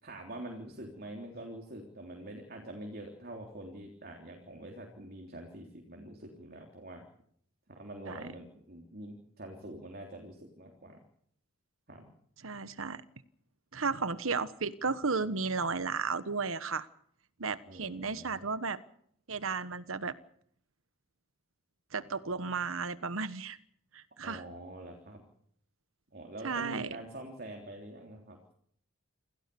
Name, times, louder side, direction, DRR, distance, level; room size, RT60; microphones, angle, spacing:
voice 1, 0.0-7.0 7.7-11.0 11.9-12.1 17.6-18.4 24.2-25.2 26.1-28.4, right 1 dB, 45° right, 2 dB, 3.5 m, -45 dB
voice 2, 12.4-13.0 13.7-16.9 17.4-18.8 19.3-20.1 21.9-23.6 23.9-24.4 26.4-27.0, right 4 dB, 75° right, 14 dB, 1.3 m, -34 dB
27.5 x 16.5 x 7.0 m, 0.67 s
head